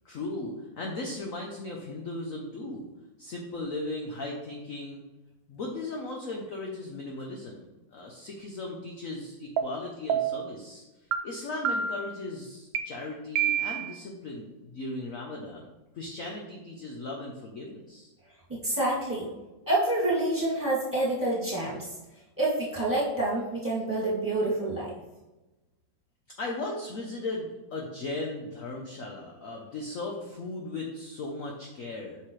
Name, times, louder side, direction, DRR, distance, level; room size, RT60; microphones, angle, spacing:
voice 1, 0.0-2.9 3.2-5.0 5.5-7.6 7.9-10.8 11.2-15.7 15.9-18.1 26.4-32.2, left 2 dB, 55° left, 0 dB, 1.1 m, -37 dB
sound 1, 9.6-9.7 10.1-10.5 11.1-11.2 11.7-12.1 12.8-12.9 13.4-14.0, right 8 dB, 90° right, 1.4 m, -27 dB
voice 2, 18.5-19.3 19.7-21.9 22.4-24.9, right 1 dB, 10° right, -8 dB, 2.6 m, -27 dB
8.1 x 5.9 x 3.2 m, 1.1 s
omnidirectional pair, 2.0 m